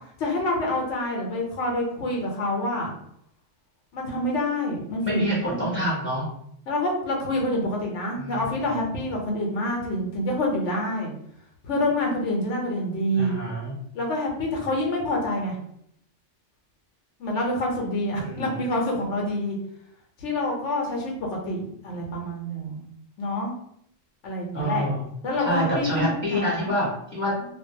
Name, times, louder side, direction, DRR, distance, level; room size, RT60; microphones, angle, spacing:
voice 1, 0.2-2.9 3.9-5.2 5.5-5.7 6.7-11.1 11.6-13.4 13.9-15.5 17.2-19.6 20.2-21.1 21.5-22.8 23.2-23.5 24.2-24.9 25.2-26.7 27.4-27.5, left 1 dB, 80° left, -1 dB, 1.0 m, -27 dB
voice 2, 5.0-6.3 8.2-8.4 13.1-13.7 18.2-18.6 24.5-25.0 25.4-27.3, equal, 10° left, -7 dB, 0.9 m, -27 dB
2.4 x 2.2 x 2.6 m, 0.70 s
omnidirectional pair, 1.2 m